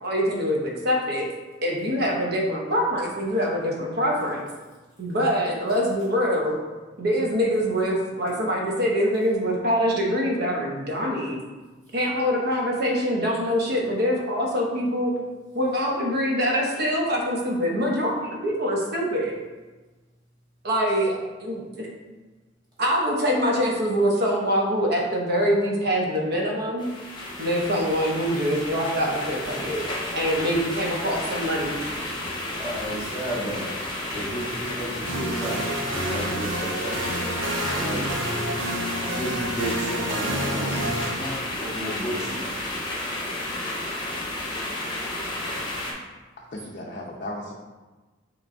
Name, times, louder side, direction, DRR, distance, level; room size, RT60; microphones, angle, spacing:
voice 1, 0.0-1.3 1.6-4.4 5.0-6.6 7.0-11.4 11.9-15.1 15.5-18.1 18.4-19.4 20.6-21.9 22.8-26.9 27.4-29.8 30.1-31.8, equal, 55° right, -1 dB, 0.9 m, -24 dB
sound 1, 26.8-45.9, left 1 dB, 25° left, 0.8 m, -32 dB
voice 2, 32.6-33.7 34.1-37.3 37.8-38.0 39.0-42.5, equal, 20° right, -8 dB, 1.2 m, -32 dB
sound 2, 35.1-41.1, right 1 dB, 90° right, 0.8 m, -29 dB
voice 3, 46.5-47.5, left 1 dB, 45° left, -3 dB, 0.5 m, -35 dB
6.6 x 3.0 x 2.6 m, 1.2 s
head